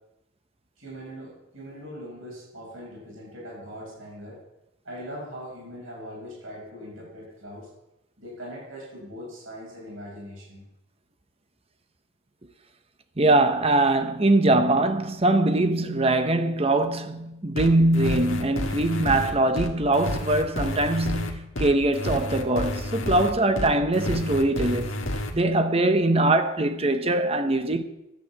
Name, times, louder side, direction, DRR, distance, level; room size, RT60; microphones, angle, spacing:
voice 1, 0.8-4.4 4.8-7.7 8.2-10.6, equal, 80° right, 6.7 m, -41 dB
voice 2, 13.2-25.1 25.3-27.8, right 2 dB, 30° right, 1.0 m, -22 dB
sound 1, 17.6-25.3, left 1 dB, 70° left, 1.7 m, -30 dB
12.5 x 8.6 x 7.4 m
head